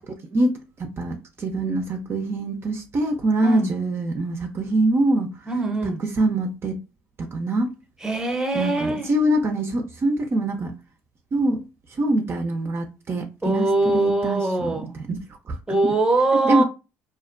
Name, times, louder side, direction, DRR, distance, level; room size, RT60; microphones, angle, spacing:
voice 1, 0.3-5.3 6.2-6.8 7.2-7.7 8.5-10.7 11.3-11.7 12.0-13.7 13.9-15.2 15.5-15.6 16.4-16.6, right 1 dB, 40° right, 0.5 m, -24 dB
voice 2, 3.4-3.7 5.5-6.0 8.0-9.1 13.4-14.9 15.7-16.6, right 2 dB, 10° right, 0.8 m, -22 dB
2.4 x 2.1 x 2.4 m
hypercardioid pair, 65°, 6 cm